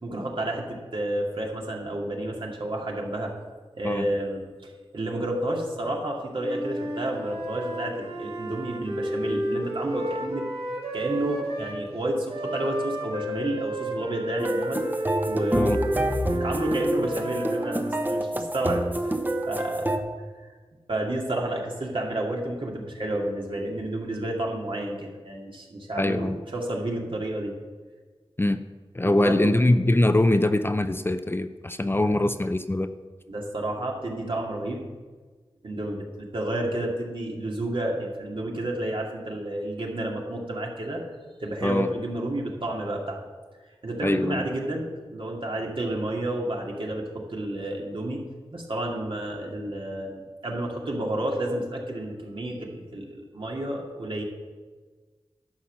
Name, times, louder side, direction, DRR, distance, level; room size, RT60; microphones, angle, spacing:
voice 1, 0.0-3.3 3.7-10.4 10.9-14.8 15.3-19.2 19.5-20.0 20.9-27.5 29.0-29.7 33.3-34.8 35.6-41.0 41.4-43.2 43.8-48.2 48.5-54.2, right 1 dB, 60° right, -1 dB, 2.2 m, -30 dB
Wind instrument woodwind instrument, 6.4-11.8 12.3-18.2, right 1 dB, 85° right, 2.0 m, -32 dB
sound 1, 14.4-20.0, right 1 dB, 20° right, 1.0 m, -28 dB
voice 2, 26.0-26.4 28.4-28.6 28.9-32.9 41.6-41.9 44.0-44.5, left 1 dB, 25° left, 10 dB, 0.5 m, -23 dB
11.5 x 5.6 x 7.4 m, 1.4 s
wide cardioid pair, 60°, 10 cm